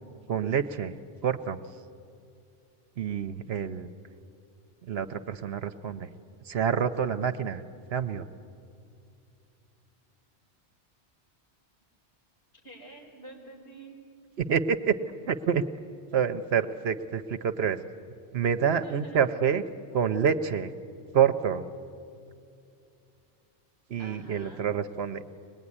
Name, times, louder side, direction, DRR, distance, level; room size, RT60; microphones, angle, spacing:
voice 1, 0.3-0.9 1.2-1.6 3.0-3.9 4.8-6.1 6.5-7.6 7.9-8.2 14.4-15.0 15.3-15.6 16.1-17.8 18.3-19.6 19.9-20.7 21.1-21.6 23.9-25.2, right 7 dB, 65° right, 11 dB, 1.0 m, -27 dB
voice 2, 12.6-13.9 18.8-19.3 24.0-24.7, right 2 dB, 60° left, -2 dB, 5.2 m, -47 dB
24.0 x 20.0 x 9.8 m, 2.6 s
omnidirectional pair, 1.2 m